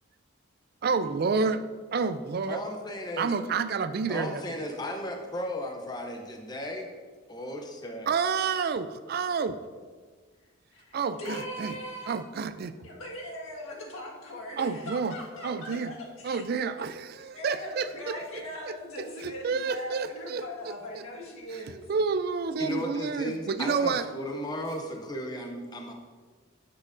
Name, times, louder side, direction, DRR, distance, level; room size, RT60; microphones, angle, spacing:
voice 1, 0.8-1.6 1.9-2.6 3.2-4.6 8.1-9.6 10.9-11.8 12.1-12.7 14.6-15.2 15.4-15.9 16.2-18.1 19.0-21.0 21.5-21.6 21.9-24.0, right 5 dB, 45° right, 12 dB, 0.3 m, -29 dB
voice 2, 2.5-3.3 4.1-6.9 7.3-8.1 22.6-25.9, left 1 dB, 20° left, 2 dB, 0.6 m, -35 dB
voice 3, 10.7-12.2 12.8-16.4 17.3-21.8, left 1 dB, 80° left, -2 dB, 1.6 m, -40 dB
9.6 x 7.5 x 2.6 m, 1.5 s
head